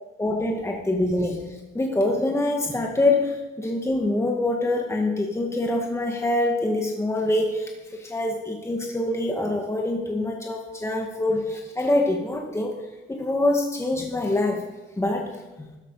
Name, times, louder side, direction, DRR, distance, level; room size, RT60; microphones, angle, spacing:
voice 1, 0.2-1.4 1.7-12.8 13.1-14.6 15.0-15.3, left 2 dB, 15° left, 1 dB, 1.9 m, -25 dB
13.5 x 12.0 x 5.7 m, 1.1 s
cardioid pair, 90°, 20 cm